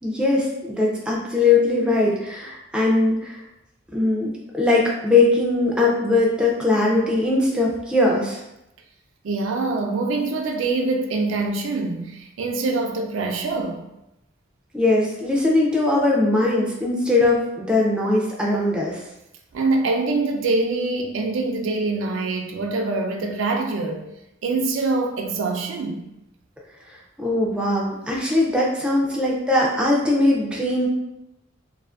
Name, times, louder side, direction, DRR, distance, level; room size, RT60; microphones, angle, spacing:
voice 1, 0.0-3.4 3.9-8.4 14.7-19.0 27.2-30.9, left 2 dB, 5° right, -3 dB, 0.3 m, -20 dB
voice 2, 9.2-13.9 19.5-24.0 24.4-26.1, right 3 dB, 90° right, 2 dB, 0.4 m, -24 dB
2.4 x 2.4 x 2.3 m, 0.89 s
head